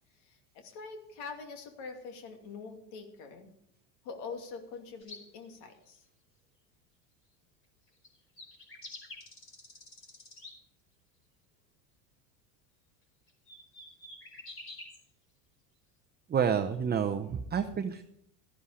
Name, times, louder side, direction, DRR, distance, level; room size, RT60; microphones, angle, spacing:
voice 1, 0.1-3.5 4.0-6.0, left 4 dB, 70° left, 5 dB, 2.6 m, -44 dB
sound 1, 5.0-5.2 8.0-8.1 8.4-10.5 13.3-15.0, left 2 dB, 30° left, 4.8 m, -48 dB
voice 2, 16.3-18.0, right 7 dB, 20° right, 6 dB, 0.7 m, -29 dB
13.0 x 11.0 x 5.0 m, 0.71 s
supercardioid pair, 105°, 46 cm